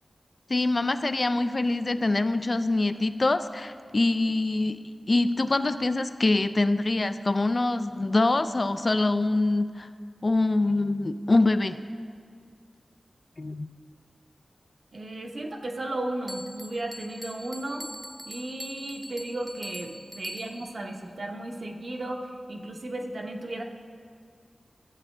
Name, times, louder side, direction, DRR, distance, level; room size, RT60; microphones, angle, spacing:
voice 1, 0.5-9.9 10.2-11.8 13.4-13.7, left 2 dB, 50° left, 11 dB, 0.4 m, -24 dB
voice 2, 14.9-17.9 18.3-23.6, right 1 dB, 70° right, 1 dB, 0.9 m, -35 dB
Bell, 16.3-20.8, equal, 10° right, 0.7 m, -43 dB
13.0 x 7.4 x 3.3 m, 2.1 s
cardioid pair, 40°, 0 cm